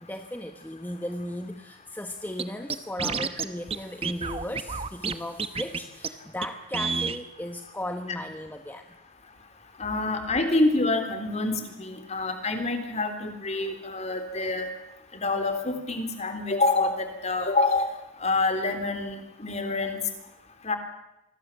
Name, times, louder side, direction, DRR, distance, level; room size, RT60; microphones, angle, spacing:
voice 1, 0.0-8.9, left 1 dB, 10° left, 6 dB, 1.0 m, -36 dB
Scratching (performance technique), 2.4-2.5 2.7-3.5 3.7-3.8 4.0-5.1 5.4-5.8 6.0-6.1 6.4-6.5 6.7-7.2, right 5 dB, 30° right, 1.1 m, -29 dB
voice 2, 9.8-14.7 15.1-17.9 18.2-20.0 20.6-20.8, left 2 dB, 30° left, 7 dB, 3.4 m, -27 dB
27.0 x 21.0 x 7.4 m, 0.95 s
head